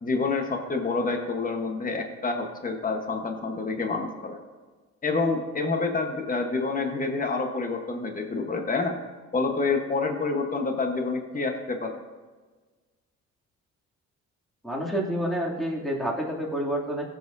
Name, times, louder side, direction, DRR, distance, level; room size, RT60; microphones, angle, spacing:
voice 1, 0.0-4.4 5.0-8.9 9.3-11.9, left 3 dB, 30° left, 4 dB, 1.2 m, -28 dB
voice 2, 14.6-17.0, equal, ahead, -3 dB, 2.7 m, -28 dB
16.5 x 7.7 x 2.7 m, 1.4 s
cardioid pair, 90°, 30 cm